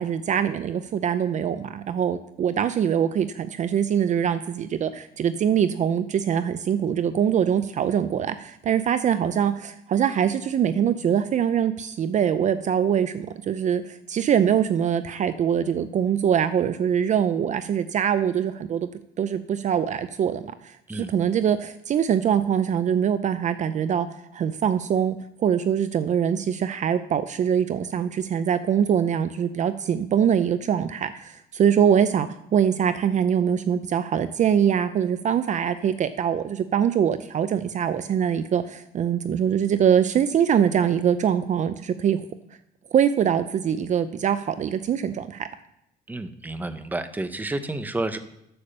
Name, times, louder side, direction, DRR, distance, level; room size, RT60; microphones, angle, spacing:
voice 1, 0.0-18.9 19.2-24.1 24.3-42.3 42.9-45.5, right 8 dB, 45° right, 12 dB, 0.6 m, -23 dB
voice 2, 46.1-48.2, right 2 dB, 10° right, 10 dB, 0.8 m, -30 dB
8.6 x 7.0 x 6.7 m, 0.80 s
cardioid pair, 110°, 17 cm